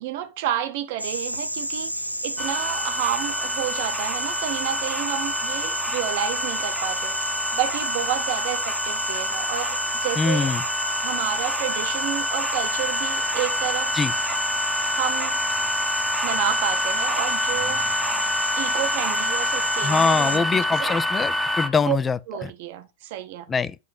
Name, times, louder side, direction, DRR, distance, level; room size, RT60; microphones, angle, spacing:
voice 1, 0.0-7.2 7.5-10.6 11.0-14.0 14.9-15.4 16.2-17.8 18.6-21.0 21.8-22.0 22.3-23.5, right 11 dB, 50° right, 0.8 m, -30 dB
sound 1, 1.0-20.4, equal, 90° right, 0.5 m, -30 dB
sound 2, 2.4-21.7, equal, ahead, 0.8 m, -27 dB
voice 2, 10.2-10.6 14.0-14.1 19.8-22.5 23.5-23.8, left 5 dB, 15° left, 0.4 m, -23 dB
9.2 x 3.1 x 5.1 m
figure-of-eight pair, 90°, 0 cm